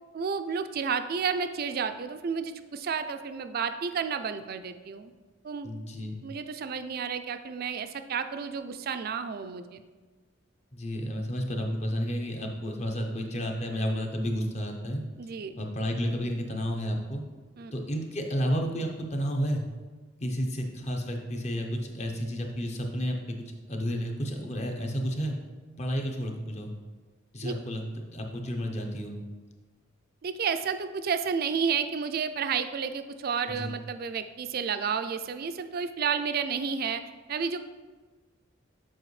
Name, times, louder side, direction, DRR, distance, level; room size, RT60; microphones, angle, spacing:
voice 1, 0.1-5.1 5.4-5.7 6.2-9.8 15.2-15.5 17.6-17.7 27.4-27.5 30.2-37.0 37.3-37.6, right 6 dB, 50° right, 10 dB, 0.4 m, -31 dB
voice 2, 5.6-6.2 10.7-15.0 15.6-17.2 17.7-19.6 20.2-23.2 23.7-25.4 25.8-26.7 27.3-27.8 28.1-29.1 33.5-33.7, equal, 35° left, 2 dB, 0.8 m, -31 dB
7.6 x 4.9 x 3.2 m, 1.3 s
head